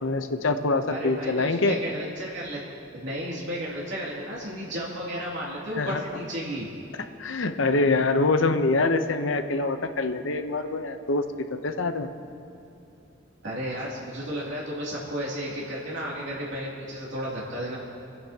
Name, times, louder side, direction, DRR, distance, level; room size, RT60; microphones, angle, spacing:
voice 1, 0.0-1.8 5.8-6.0 7.2-11.2 11.5-12.1, left 3 dB, 85° left, 8 dB, 0.8 m, -25 dB
voice 2, 0.9-2.6 2.9-6.7 13.4-17.8, equal, 70° right, -6 dB, 2.6 m, -33 dB
28.0 x 10.5 x 2.9 m, 2.9 s
head